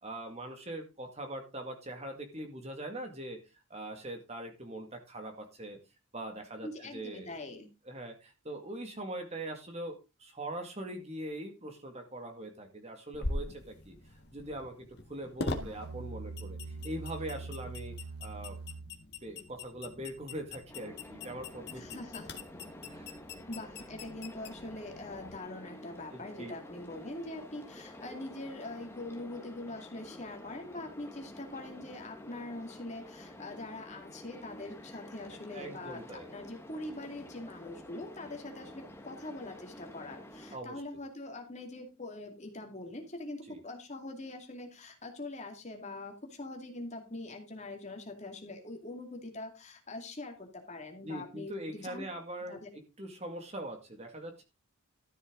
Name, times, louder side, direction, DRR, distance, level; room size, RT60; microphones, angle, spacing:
voice 1, 0.0-3.4 3.7-5.8 6.1-7.3 7.9-14.0 14.3-18.6 19.2-22.0 22.8-23.2 26.1-26.5 35.5-36.3 40.5-40.8 43.5-43.6 51.0-54.4, right 1 dB, 30° right, 4 dB, 2.0 m, -42 dB
voice 2, 6.6-7.7 21.7-22.3 23.5-52.0 52.5-52.7, left 2 dB, 30° left, 3 dB, 2.4 m, -43 dB
sound 1, 13.1-25.4, left 2 dB, 45° left, 1.7 m, -43 dB
Musical instrument, 15.6-19.1, right 3 dB, 75° right, 0.9 m, -43 dB
sound 2, 20.7-40.6, left 1 dB, 10° left, 1.5 m, -50 dB
13.0 x 8.0 x 3.9 m, 0.27 s
head